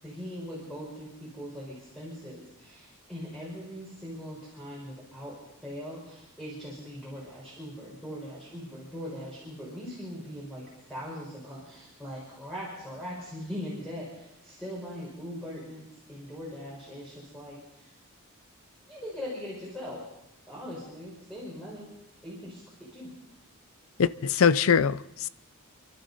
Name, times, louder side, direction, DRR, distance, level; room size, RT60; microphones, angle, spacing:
voice 1, 0.0-17.9 18.9-20.0 20.5-21.9 22.2-23.1, equal, 5° left, 4.5 m, -41 dB
voice 2, 24.0-25.3, left 6 dB, 65° left, 0.5 m, -23 dB
30.0 x 12.0 x 4.0 m
head